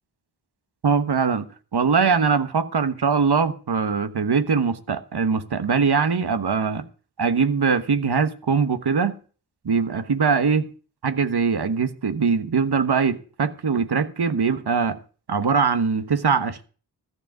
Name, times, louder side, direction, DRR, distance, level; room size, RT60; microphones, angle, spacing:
voice 1, 0.8-1.5 1.7-6.8 7.2-9.2 9.6-10.7 11.0-15.0 15.3-16.7, right 5 dB, 70° right, 1.3 m, -22 dB
14.0 x 5.0 x 9.1 m
wide cardioid pair, 90°, 41 cm